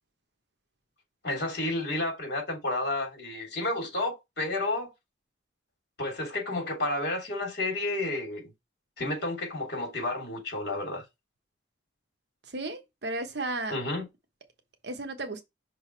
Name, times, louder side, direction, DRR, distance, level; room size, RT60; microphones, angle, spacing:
voice 1, 1.2-4.9 6.0-8.5 9.0-11.0 13.7-14.1, left 2 dB, 55° left, 3.1 m, -31 dB
voice 2, 12.5-13.8 14.8-15.4, right 2 dB, 55° right, 1.1 m, -34 dB
5.8 x 4.0 x 4.6 m
head